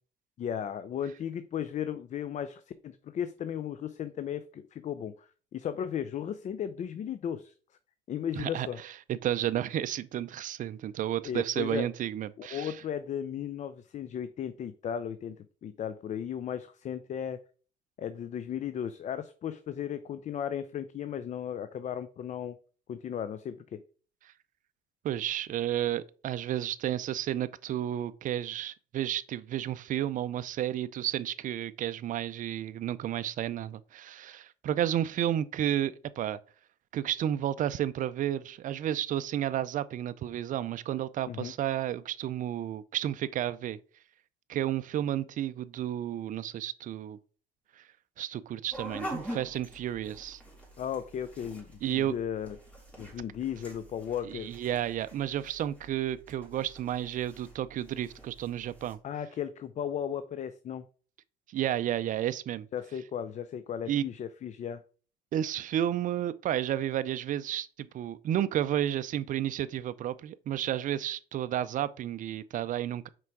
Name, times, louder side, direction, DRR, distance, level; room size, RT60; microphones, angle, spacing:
voice 1, 0.4-7.5 8.1-8.8 11.2-11.9 12.4-15.4 15.6-17.4 18.0-22.6 22.9-23.8 41.3-41.5 50.8-52.6 53.0-54.5 59.0-60.8 62.7-64.8, left 9 dB, 45° left, 0.5 m, -35 dB
voice 2, 8.4-12.8 25.0-36.4 36.9-43.8 44.5-47.2 48.2-50.4 51.8-52.1 54.2-59.0 61.5-62.7 63.9-64.0 65.3-73.1, right 11 dB, 50° right, 0.5 m, -32 dB
sound 1, 48.7-58.9, equal, 10° left, 2.8 m, -46 dB
6.0 x 4.7 x 4.6 m
cardioid pair, 110°, 17 cm